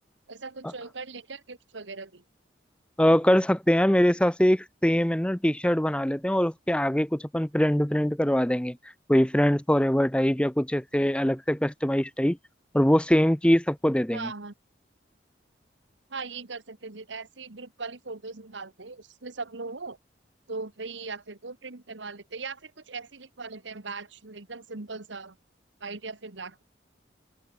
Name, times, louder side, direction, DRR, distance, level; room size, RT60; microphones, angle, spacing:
voice 1, 0.3-2.2 14.1-14.5 16.1-20.0 20.5-25.3 25.8-26.6, right 4 dB, 80° right, 1.6 m, -39 dB
voice 2, 3.0-8.8 9.1-12.4 12.7-14.3, equal, 5° left, 0.8 m, -23 dB
open air
head